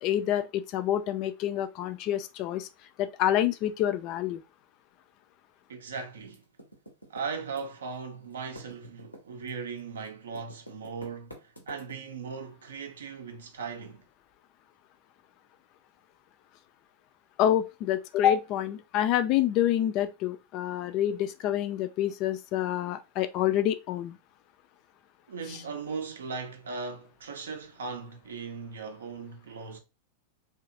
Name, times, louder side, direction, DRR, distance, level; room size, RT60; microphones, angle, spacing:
voice 1, 0.0-2.7 3.0-4.4 17.4-24.2, left 11 dB, 40° left, 0.3 m, -27 dB
voice 2, 5.7-6.4 7.1-14.1 25.3-29.8, right 5 dB, 65° right, 0.5 m, -38 dB
Typing, 6.3-8.0 8.2-12.3, equal, 85° left, 0.7 m, -49 dB
2.8 x 2.4 x 2.5 m
figure-of-eight pair, 90°, 0 cm